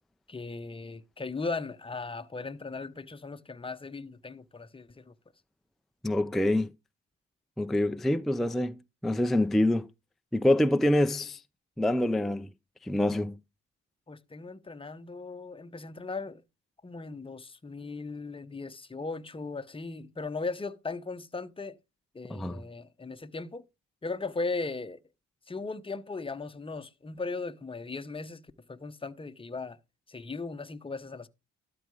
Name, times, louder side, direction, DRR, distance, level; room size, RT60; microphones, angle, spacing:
voice 1, 0.3-5.1 14.1-16.4 16.8-21.8 22.1-23.6 24.0-25.0 25.5-28.4 28.7-29.8 30.1-31.3, left 3 dB, 20° left, 0.9 m, -37 dB
voice 2, 6.0-6.7 7.6-9.9 10.3-11.4 11.8-12.5 12.8-13.4 22.3-22.6, left 1 dB, ahead, 0.4 m, -26 dB
12.5 x 4.9 x 4.8 m
cardioid pair, 90°, 30 cm